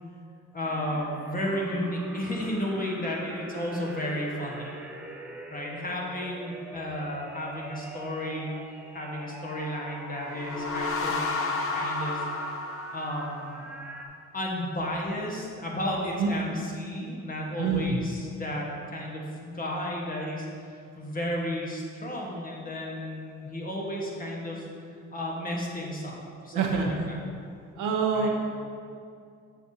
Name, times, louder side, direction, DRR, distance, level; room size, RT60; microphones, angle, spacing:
voice 1, 0.5-4.7 5.5-8.5 8.9-12.3 12.9-13.6 14.3-24.7 25.1-26.1 26.4-27.2 28.1-28.3, equal, 30° left, -2 dB, 1.3 m, -33 dB
sound 1, 0.7-14.1, right 1 dB, 5° right, 0.6 m, -43 dB
sound 2, 10.2-13.7, left 3 dB, 45° left, 0.7 m, -31 dB
voice 2, 17.6-18.0 26.5-26.9 27.8-28.3, right 5 dB, 90° right, 1 dB, 0.9 m, -25 dB
7.4 x 5.8 x 2.8 m, 2.4 s
cardioid pair, 90°, 30 cm